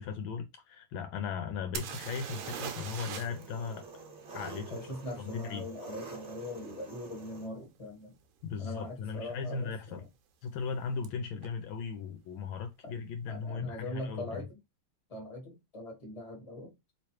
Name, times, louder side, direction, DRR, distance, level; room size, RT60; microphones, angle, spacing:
voice 1, 0.0-3.8 4.3-4.8 5.2-5.6 8.4-10.0 10.4-14.4, left 5 dB, 75° left, 1.3 m, -37 dB
sound 1, 1.7-3.5 3.7-3.8 7.2-7.3 8.0-8.2 8.4-9.0 11.0-11.1 11.4-11.5, right 8 dB, 75° right, 1.3 m, -40 dB
Engine, 2.2-7.5, right 4 dB, 55° right, 0.8 m, -47 dB
voice 2, 4.7-8.2 8.6-10.1 13.3-14.6 15.1-16.7, left 1 dB, 20° left, 1.2 m, -41 dB
3.2 x 3.0 x 3.1 m
omnidirectional pair, 2.3 m